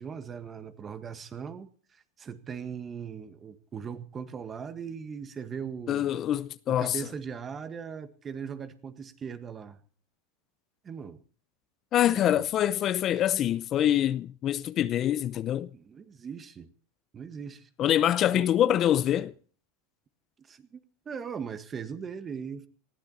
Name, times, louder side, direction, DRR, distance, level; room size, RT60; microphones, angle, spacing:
voice 1, 0.0-6.1 6.7-9.8 10.8-11.2 12.2-12.5 15.7-16.7 17.1-17.7 18.3-18.5 20.5-20.8 21.1-22.7, right 6 dB, 25° right, 1.8 m, -39 dB
voice 2, 5.9-7.0 11.9-15.7 17.8-19.3, left 11 dB, 40° left, 0.6 m, -25 dB
20.0 x 15.0 x 4.2 m
hypercardioid pair, 110°, 0 cm